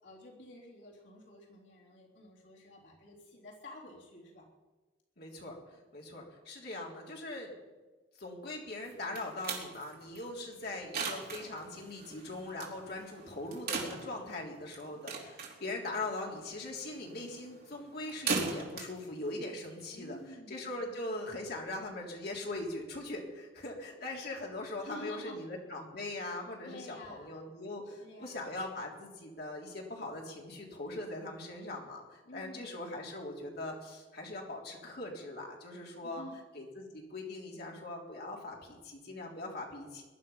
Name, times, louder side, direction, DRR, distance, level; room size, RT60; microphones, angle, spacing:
voice 1, 0.0-4.4 19.9-21.0 24.8-25.4 26.6-27.5 27.9-28.6 32.3-32.8 36.0-36.4, left 1 dB, 75° left, -3 dB, 3.5 m, -50 dB
voice 2, 5.2-5.6 5.9-7.5 8.2-20.2 20.5-36.2 36.6-40.0, left 2 dB, 60° left, -1 dB, 3.6 m, -41 dB
sound 1, 8.8-20.3, right 4 dB, 55° right, 3.2 m, -40 dB
21.5 x 11.5 x 5.7 m, 1.3 s
head